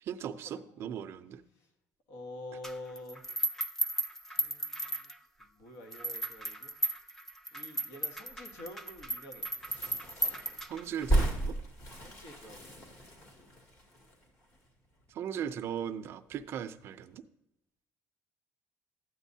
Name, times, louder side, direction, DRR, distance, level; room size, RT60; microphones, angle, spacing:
voice 1, 0.0-1.4 10.7-11.6 15.1-17.2, right 9 dB, 50° right, 11 dB, 0.5 m, -38 dB
voice 2, 2.1-3.2 4.4-5.1 5.4-6.7 7.5-9.5 12.0-12.7, left 1 dB, 75° left, 5 dB, 1.6 m, -47 dB
sound 1, 2.6-5.4 5.9-11.1, right 2 dB, 5° left, 0.5 m, -35 dB
sound 2, 9.5-15.1 15.4-15.5 15.7-16.6 16.9-17.1, right 1 dB, 45° left, 2.3 m, -35 dB
12.5 x 9.0 x 2.8 m, 0.85 s
cardioid pair, 155°, 5 cm